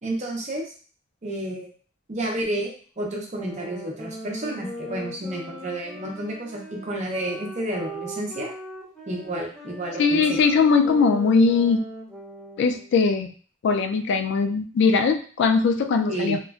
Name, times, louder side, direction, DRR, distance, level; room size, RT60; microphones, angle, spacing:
voice 1, 0.0-0.6 1.2-1.7 2.1-8.5 9.1-10.4 16.1-16.4, right 1 dB, 35° right, 0 dB, 0.7 m, -30 dB
sound 1, 3.3-13.0, equal, 5° left, 0.6 m, -39 dB
voice 2, 10.0-11.8 12.6-13.3 13.6-16.4, left 4 dB, 60° left, 7 dB, 0.3 m, -20 dB
3.0 x 2.4 x 2.3 m, 0.42 s
head